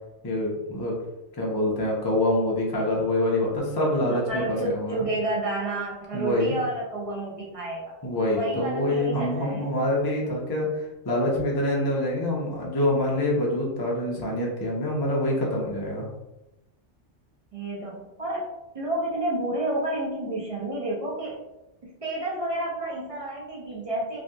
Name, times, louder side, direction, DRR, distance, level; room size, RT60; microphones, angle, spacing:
voice 1, 0.2-0.9 1.4-5.0 6.1-6.5 8.0-16.1, left 1 dB, 35° left, -3 dB, 0.3 m, -26 dB
voice 2, 4.3-7.9 8.3-9.7 17.5-21.4 21.8-24.2, right 1 dB, 45° right, -5 dB, 0.4 m, -30 dB
2.6 x 2.4 x 2.2 m, 0.98 s
omnidirectional pair, 1.1 m